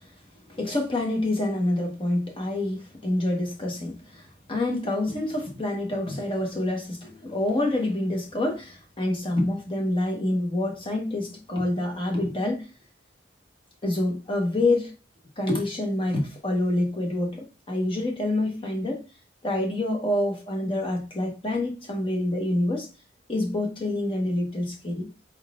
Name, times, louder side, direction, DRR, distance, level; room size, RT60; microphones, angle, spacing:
voice 1, 0.5-12.7 13.8-14.9 15.4-19.0 19.4-22.9 23.3-25.1, left 1 dB, 30° left, 1.1 m, -27 dB
4.8 x 3.9 x 2.4 m
head